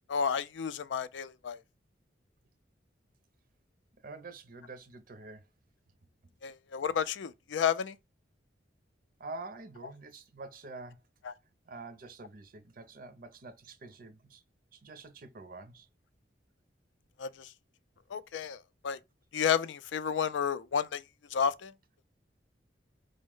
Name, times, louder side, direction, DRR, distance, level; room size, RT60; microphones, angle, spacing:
voice 1, 0.1-1.6 6.4-8.0 11.3-11.4 17.2-17.5 18.1-19.0 19.3-21.0 21.3-21.7, left 7 dB, 80° left, 0.4 m, -31 dB
voice 2, 4.0-5.5 9.2-11.0 11.7-14.4 14.7-15.9, right 3 dB, 50° right, 0.5 m, -46 dB
5.1 x 2.0 x 3.7 m
head